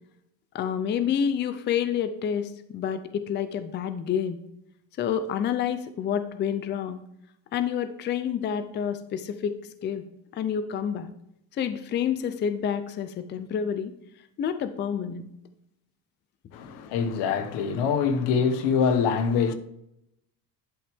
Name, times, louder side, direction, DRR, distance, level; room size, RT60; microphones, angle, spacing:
voice 1, 0.5-4.4 5.0-7.0 7.5-9.5 9.8-10.0 10.3-11.1 11.5-13.9 14.4-15.3, left 8 dB, 25° left, 0.5 m, -28 dB
voice 2, 16.5-19.5, left 6 dB, 85° left, 1.1 m, -24 dB
11.0 x 6.1 x 3.5 m
cardioid pair, 170°, 40 cm